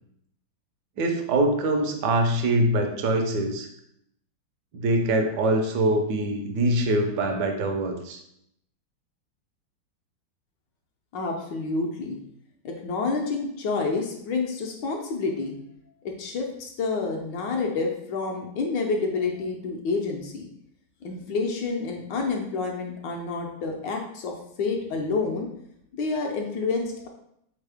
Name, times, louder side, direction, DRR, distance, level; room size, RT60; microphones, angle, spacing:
voice 1, 1.0-3.7 4.7-8.2, right 1 dB, 70° right, 4 dB, 1.1 m, -24 dB
voice 2, 11.1-12.2 12.6-15.6 16.0-20.5 21.0-25.5 25.9-27.1, left 4 dB, 75° left, 1 dB, 1.2 m, -28 dB
4.1 x 3.6 x 3.4 m, 0.74 s
omnidirectional pair, 2.2 m